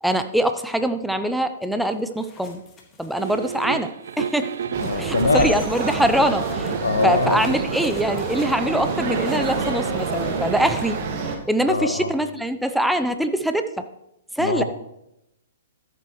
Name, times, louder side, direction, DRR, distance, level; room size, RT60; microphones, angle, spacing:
voice 1, 0.0-2.6 3.0-4.5 4.8-6.7 7.0-11.0 11.3-13.9 14.4-14.6, right 1 dB, ahead, 8 dB, 0.7 m, -23 dB
sound 1, 1.9-11.0, left 4 dB, 20° left, 1.8 m, -46 dB
sound 2, 3.2-5.5 6.7-7.9 8.4-8.5, right 7 dB, 70° right, 0.5 m, -32 dB
voice 2, 4.7-5.5 6.8-7.4 11.7-12.1 14.4-14.6, left 3 dB, 80° left, 8 dB, 1.2 m, -22 dB
sound 3, 4.7-11.4, right 4 dB, 45° right, 1.6 m, -27 dB
13.5 x 7.7 x 3.2 m, 0.85 s
hypercardioid pair, 120°, 0 cm